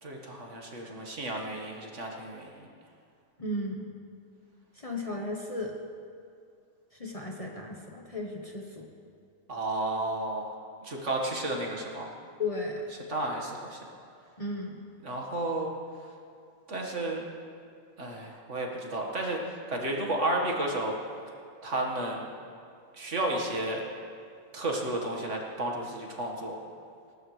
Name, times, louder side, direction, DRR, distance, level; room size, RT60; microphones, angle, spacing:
voice 1, 0.0-2.6 9.5-10.5 10.8-12.1 13.1-13.8 15.0-15.7 16.7-17.2 18.0-20.9 21.6-22.3 22.9-23.8 24.5-26.6, right 1 dB, 55° right, 0 dB, 2.0 m, -32 dB
voice 2, 3.4-3.9 4.7-5.8 7.0-8.9 12.4-12.9 14.4-14.8, left 2 dB, 25° left, -1 dB, 1.2 m, -35 dB
19.5 x 18.0 x 3.3 m, 2.3 s
omnidirectional pair, 1.5 m